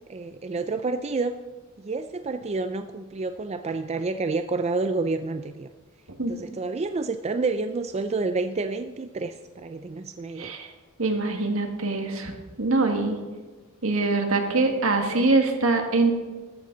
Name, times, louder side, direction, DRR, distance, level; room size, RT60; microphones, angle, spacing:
voice 1, 0.1-1.3 1.8-5.7 6.3-10.6, right 3 dB, 30° right, 9 dB, 0.4 m, -29 dB
voice 2, 10.4-10.7 11.0-12.3 12.6-13.2 13.8-16.1, right 3 dB, 70° right, 4 dB, 1.9 m, -23 dB
14.0 x 13.5 x 4.0 m, 1.3 s
head